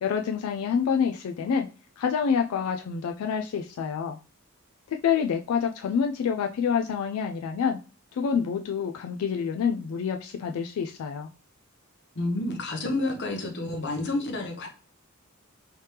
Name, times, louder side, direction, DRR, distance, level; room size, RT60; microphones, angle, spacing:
voice 1, 0.0-1.7 2.0-4.2 5.0-7.8 8.1-11.3, left 6 dB, 90° left, 4 dB, 0.3 m, -27 dB
voice 2, 12.2-14.7, left 2 dB, 55° left, 3 dB, 0.8 m, -29 dB
3.2 x 3.2 x 2.8 m, 0.34 s
head